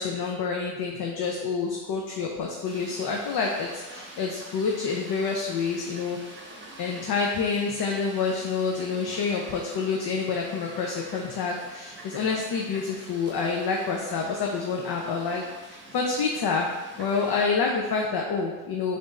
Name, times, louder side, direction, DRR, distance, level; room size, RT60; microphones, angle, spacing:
voice 1, 0.0-6.2 6.8-16.7 17.0-19.0, left 5 dB, 55° left, 0 dB, 0.6 m, -28 dB
Fowl, 2.7-17.4, right 1 dB, 25° right, 0.9 m, -46 dB
3.4 x 2.6 x 4.0 m, 1.2 s
cardioid pair, 90°, 47 cm